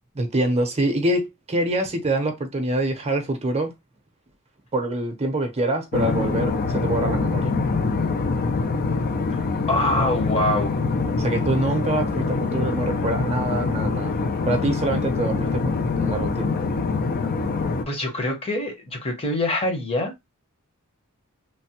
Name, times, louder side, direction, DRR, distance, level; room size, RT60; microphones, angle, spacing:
voice 1, 0.1-3.7 4.7-7.5 11.2-14.1 14.5-16.5, right 1 dB, 30° right, 0.6 m, -25 dB
sound 1, 5.9-17.9, left 4 dB, 40° left, 0.4 m, -24 dB
voice 2, 9.7-10.8 17.9-20.1, left 1 dB, 25° left, 0.8 m, -24 dB
3.2 x 2.1 x 2.8 m
head